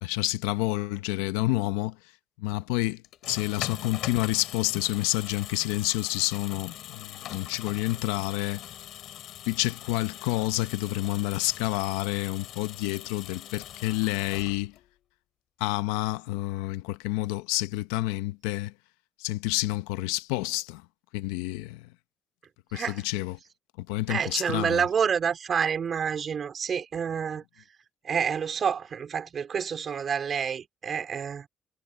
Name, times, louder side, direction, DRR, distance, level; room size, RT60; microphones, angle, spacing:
voice 1, 0.0-2.0 2.4-8.6 9.5-14.7 15.6-18.7 19.2-20.8 21.1-21.9 22.7-23.4 23.8-24.8, left 19 dB, 90° left, 0.9 m, -29 dB
sound 1, 3.0-15.0, left 12 dB, 70° left, 5.8 m, -42 dB
voice 2, 22.7-23.0 24.1-27.4 28.0-31.5, right 7 dB, 50° right, 3.7 m, -28 dB
supercardioid pair, 65°, 0 cm